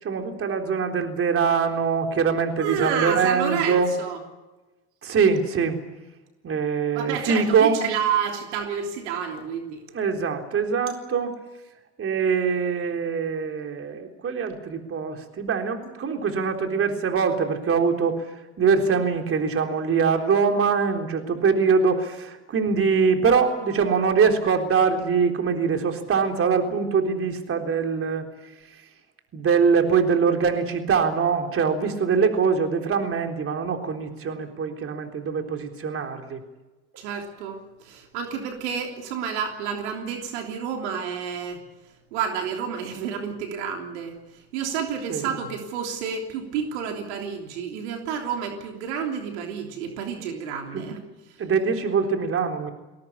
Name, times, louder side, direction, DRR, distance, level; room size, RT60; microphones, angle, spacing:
voice 1, 0.0-3.9 5.0-5.8 6.4-7.8 9.9-11.3 12.0-18.2 18.6-28.3 29.3-36.4 45.1-45.3 50.7-50.9 51.4-52.7, right 5 dB, 40° right, 4 dB, 3.8 m, -23 dB
voice 2, 2.6-4.2 6.9-9.8 37.0-41.6 42.1-44.2 44.5-51.0, right 7 dB, 80° right, 3 dB, 3.4 m, -30 dB
21.0 x 17.5 x 10.0 m, 1.1 s
hypercardioid pair, 75°, 34 cm